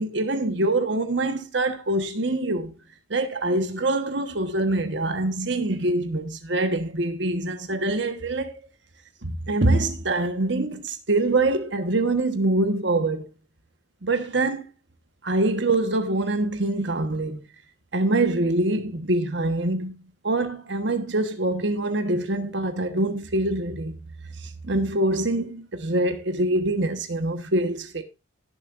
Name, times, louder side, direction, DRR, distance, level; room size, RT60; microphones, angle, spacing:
voice 1, 0.0-2.7 3.1-8.5 9.2-13.3 14.0-14.7 15.2-17.4 17.9-20.0 20.2-23.9 24.3-28.0, right 2 dB, 65° right, 1.3 m, -24 dB
17.0 x 7.4 x 2.6 m
head